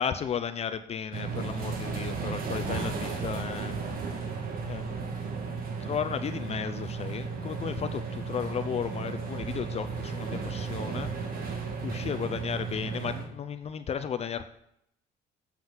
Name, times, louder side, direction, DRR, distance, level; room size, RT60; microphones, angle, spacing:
voice 1, 0.0-3.7 4.6-5.0 5.8-11.3 11.8-14.5, left 7 dB, 40° left, 10 dB, 0.5 m, -34 dB
sound 1, 1.1-13.3, right 5 dB, 60° right, 1.5 m, -34 dB
7.8 x 7.2 x 3.8 m, 0.75 s
cardioid pair, 110°, 17 cm